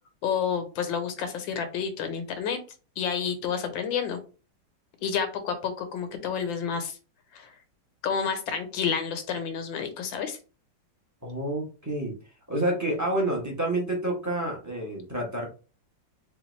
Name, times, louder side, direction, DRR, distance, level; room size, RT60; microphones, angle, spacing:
voice 1, 0.2-2.6 3.0-4.2 5.0-7.0 7.3-7.5 8.0-10.4, left 7 dB, 90° left, 8 dB, 1.6 m, -29 dB
voice 2, 11.2-12.1 12.5-15.5, right 1 dB, 15° right, -1 dB, 0.6 m, -28 dB
3.4 x 3.4 x 3.1 m, 0.34 s
omnidirectional pair, 2.0 m